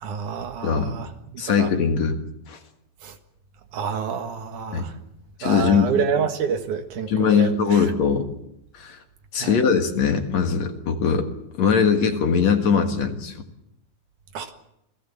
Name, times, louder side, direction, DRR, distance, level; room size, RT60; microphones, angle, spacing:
voice 1, 0.0-1.7 3.0-3.2 3.7-4.9 5.4-7.8 9.4-9.6 14.3-14.5, right 6 dB, 70° right, 6 dB, 3.0 m, -28 dB
voice 2, 0.6-0.9 1.4-2.2 2.5-2.6 4.7-4.9 5.4-5.9 7.1-8.3 8.7-9.0 9.3-11.3 11.6-13.4, left 6 dB, 60° left, 5 dB, 2.8 m, -21 dB
28.0 x 18.0 x 7.3 m, 0.81 s
omnidirectional pair, 3.8 m